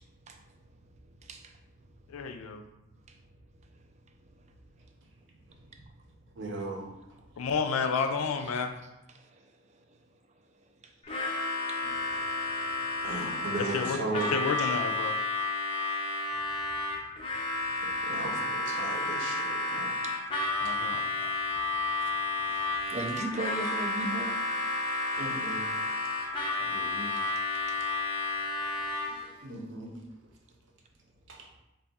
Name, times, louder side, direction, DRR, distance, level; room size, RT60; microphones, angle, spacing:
voice 1, 0.0-2.2 3.1-3.2 3.5-5.8 7.2-7.3 7.8-7.9 8.2-11.3 11.7-11.8 19.7-20.9 21.6-21.9 22.4-24.5 26.6-27.9, right 2 dB, 30° right, 4 dB, 0.3 m, -43 dB
voice 2, 2.1-2.6 7.4-8.7 13.7-14.0 14.3-15.2 20.6-21.3, left 5 dB, 80° left, 7 dB, 0.4 m, -31 dB
voice 3, 6.3-6.9 11.1-11.2 12.1-12.3 13.0-14.7 18.0-20.0 20.6-20.7 25.2-25.7 28.7-29.9 31.3-31.5, right 2 dB, 60° right, 1 dB, 0.7 m, -37 dB
Harmonica, 11.0-29.3, left 2 dB, 25° left, 0.5 m, -31 dB
3.3 x 2.3 x 4.0 m, 0.92 s
head